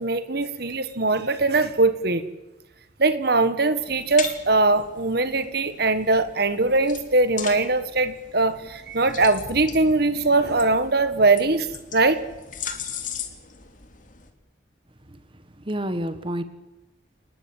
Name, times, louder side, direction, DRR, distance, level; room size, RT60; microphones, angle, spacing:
voice 1, 0.0-2.2 3.0-12.2, right 3 dB, 55° right, 11 dB, 1.6 m, -21 dB
sound 1, 3.7-14.3, left 7 dB, 45° left, 3.1 m, -39 dB
voice 2, 15.1-16.4, equal, 25° right, 10 dB, 1.6 m, -30 dB
29.5 x 20.0 x 9.0 m, 1.0 s
head